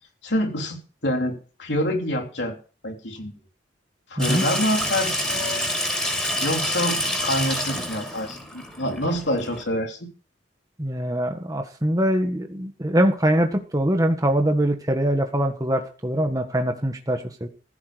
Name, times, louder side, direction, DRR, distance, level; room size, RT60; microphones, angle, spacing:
voice 1, 0.2-2.6 2.8-3.3 4.1-5.7 6.4-10.0, left 1 dB, 70° left, 2 dB, 3.4 m, -26 dB
Water tap faucet / Sink (filling or washing), 4.2-9.6, equal, 5° left, 5.7 m, -27 dB
voice 2, 10.8-17.5, right 1 dB, 20° right, 4 dB, 1.7 m, -23 dB
15.5 x 10.5 x 5.2 m, 0.37 s
head